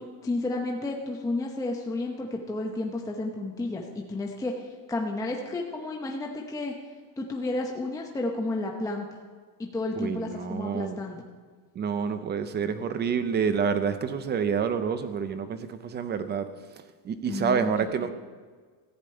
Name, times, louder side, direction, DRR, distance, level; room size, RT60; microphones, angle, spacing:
voice 1, 0.0-6.7 7.2-9.1 9.6-11.2 17.3-17.9, left 2 dB, 5° left, 0 dB, 0.8 m, -32 dB
voice 2, 10.0-11.0 11.7-16.5 17.0-18.1, right 6 dB, 20° right, 11 dB, 0.5 m, -28 dB
15.0 x 5.2 x 8.7 m, 1.5 s
cardioid pair, 150°, 49 cm